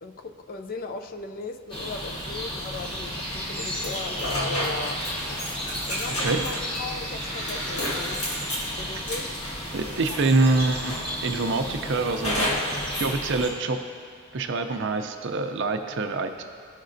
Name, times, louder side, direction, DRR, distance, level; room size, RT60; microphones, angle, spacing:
voice 1, 0.0-5.1 5.9-8.3 8.8-9.3, left 3 dB, 40° left, 7 dB, 0.4 m, -37 dB
sound 1, 1.7-13.5, equal, 25° left, 1.3 m, -33 dB
sound 2, 3.8-10.5 10.9-11.5 12.2-13.2, left 1 dB, 90° left, 1.6 m, -32 dB
voice 2, 9.7-10.9 11.2-13.8 14.3-16.4, right 3 dB, 55° right, 7 dB, 0.5 m, -25 dB
14.5 x 5.2 x 2.6 m, 2.2 s
head